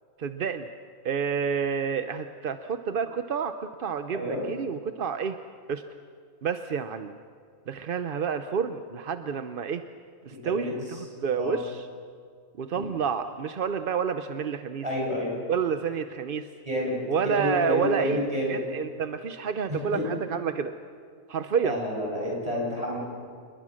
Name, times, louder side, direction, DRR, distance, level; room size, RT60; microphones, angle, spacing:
voice 1, 0.2-0.7 1.0-5.4 5.7-5.8 6.4-7.2 7.7-9.8 10.3-11.9 12.6-14.8 15.5-16.5 17.1-18.2 18.5-20.7 21.3-21.8, right 6 dB, 50° right, 9 dB, 0.7 m, -29 dB
voice 2, 10.4-10.8 11.4-11.5 14.8-15.3 16.6-17.0 17.2-18.6 19.7-20.0 21.6-23.0, equal, 20° right, -3 dB, 7.8 m, -29 dB
28.0 x 21.5 x 6.4 m, 2.2 s
omnidirectional pair, 1.6 m